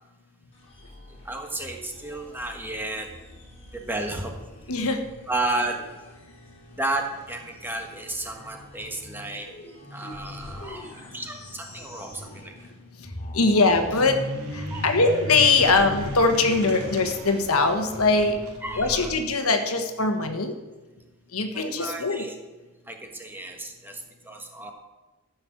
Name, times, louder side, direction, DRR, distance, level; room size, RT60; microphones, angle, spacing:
sound 1, 0.5-12.8 13.0-19.1, equal, 30° left, 3.0 m, -42 dB
voice 1, 1.2-3.1 3.7-4.3 5.3-5.8 6.7-9.5 9.9-12.7 14.7-14.9 18.6-19.1 21.5-22.4 22.9-24.7, right 2 dB, 10° right, 3 dB, 1.3 m, -32 dB
voice 2, 13.3-14.2 14.8-18.4 18.8-20.5 21.3-22.2, left 3 dB, 75° left, 6 dB, 1.4 m, -21 dB
sound 2, 13.6-18.6, equal, 85° right, 2.5 m, -37 dB
14.5 x 6.4 x 7.4 m, 1.2 s
head